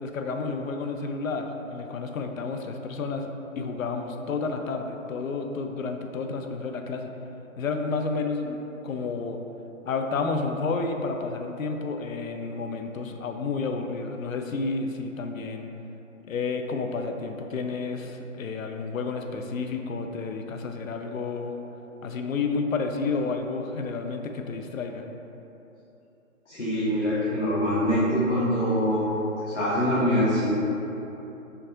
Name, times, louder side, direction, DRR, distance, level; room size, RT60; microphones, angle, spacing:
voice 1, 0.0-3.3 3.6-7.1 7.6-9.4 9.8-15.7 16.3-21.5 22.0-25.0, left 4 dB, 70° left, 5 dB, 0.5 m, -30 dB
voice 2, 26.5-29.2 29.5-30.5, equal, 55° left, -9 dB, 0.9 m, -24 dB
4.6 x 2.6 x 3.6 m, 3.0 s
hypercardioid pair, 175°, 42 cm